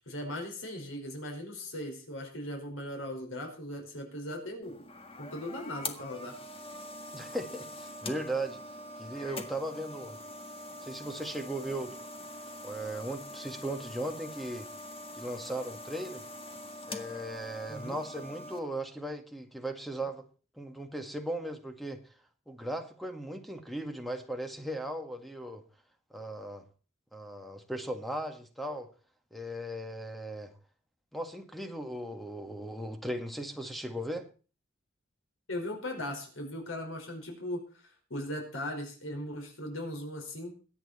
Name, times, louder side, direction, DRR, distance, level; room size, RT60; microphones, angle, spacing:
voice 1, 0.1-4.8 5.2-6.4 17.7-18.0 35.5-40.5, left 1 dB, 70° left, 2 dB, 4.9 m, -38 dB
sound 1, 4.6-18.6, left 1 dB, 30° left, 1.8 m, -44 dB
voice 2, 7.1-8.6 9.0-10.2 10.8-11.9 12.6-14.7 15.1-16.2 16.9-20.2 20.6-22.0 22.5-25.6 26.1-26.7 27.1-28.9 29.3-30.5 31.1-34.3, right 1 dB, ahead, 6 dB, 1.8 m, -37 dB
22.5 x 9.1 x 4.3 m, 0.37 s
head